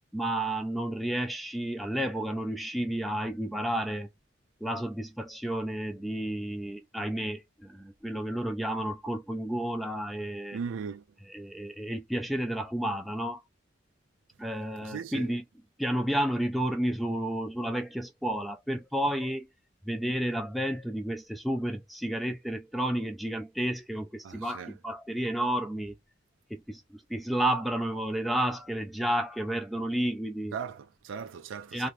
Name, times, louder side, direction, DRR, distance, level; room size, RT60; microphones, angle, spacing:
voice 1, 0.1-4.1 4.6-10.6 11.3-13.4 14.4-15.4 15.8-19.5 19.9-25.9 26.5-30.6 31.7-31.9, right 1 dB, ahead, 0.4 m, -31 dB
voice 2, 10.5-11.0 14.8-15.3 24.2-24.7 30.5-31.9, right 6 dB, 90° right, 0.4 m, -38 dB
2.9 x 2.5 x 3.1 m
head